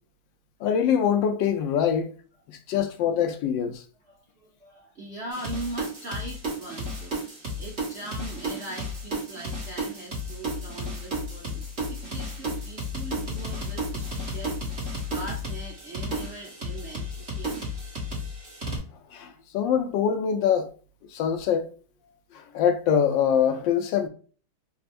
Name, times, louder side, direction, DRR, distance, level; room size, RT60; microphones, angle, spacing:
voice 1, 0.6-2.1 2.5-3.8 19.1-20.7 21.1-21.7 22.3-24.1, left 8 dB, 75° left, 1.2 m, -24 dB
voice 2, 4.0-7.3 7.6-14.6 15.1-17.7, right 1 dB, 55° right, 0.7 m, -40 dB
sound 1, 5.3-18.8, equal, 35° right, 1.4 m, -33 dB
4.2 x 2.3 x 2.4 m
omnidirectional pair, 2.2 m